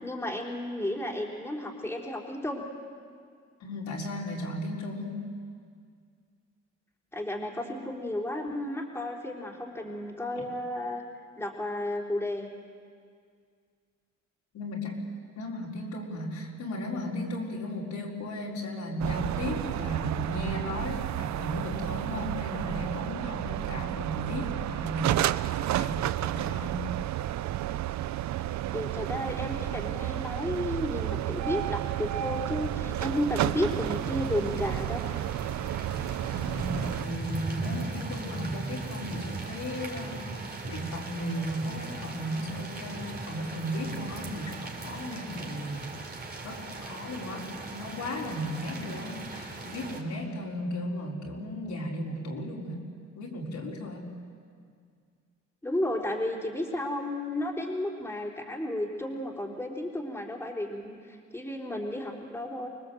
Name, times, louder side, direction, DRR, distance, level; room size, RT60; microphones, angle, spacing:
voice 1, 0.0-2.6 7.1-11.0 11.4-12.5 28.7-35.0 55.6-62.7, left 1 dB, 10° left, -2 dB, 3.5 m, -33 dB
voice 2, 3.6-5.2 10.3-10.4 14.5-15.1 15.3-25.5 25.8-26.9 36.3-45.9 46.4-52.8 53.1-54.1, left 1 dB, 70° left, -3 dB, 4.5 m, -35 dB
sound 1, 19.0-37.1, right 13 dB, 65° right, 0.6 m, -31 dB
sound 2, 32.0-50.0, right 3 dB, 35° right, 3.6 m, -39 dB
25.0 x 19.5 x 7.8 m, 2.1 s
cardioid pair, 90°, 30 cm